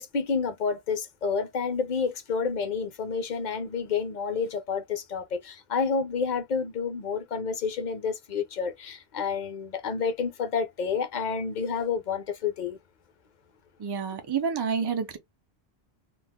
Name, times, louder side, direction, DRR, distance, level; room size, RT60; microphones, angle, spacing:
voice 1, 0.0-12.8, left 5 dB, 50° left, 0.7 m, -29 dB
voice 2, 13.8-15.2, right 6 dB, 30° right, 0.5 m, -29 dB
2.5 x 2.3 x 3.5 m
omnidirectional pair, 1.1 m